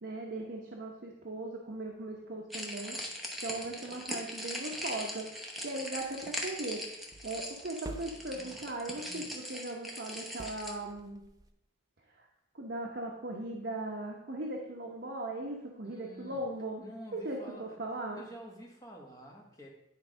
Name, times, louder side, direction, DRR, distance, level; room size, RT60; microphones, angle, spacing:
voice 1, 0.0-3.0 3.4-5.3 5.6-6.8 7.2-11.2 12.2-12.3 12.5-16.8 17.1-18.2, right 2 dB, 55° right, -1 dB, 0.9 m, -38 dB
sound 1, 2.5-10.7, equal, ahead, 0.8 m, -40 dB
sound 2, 6.0-9.2 10.4-11.5, right 2 dB, 20° right, 0.4 m, -50 dB
voice 2, 8.3-8.6 9.0-9.3 15.8-16.4 16.8-17.8 18.1-19.7, equal, 20° left, -1 dB, 1.3 m, -49 dB
10.0 x 3.6 x 5.0 m, 0.86 s
head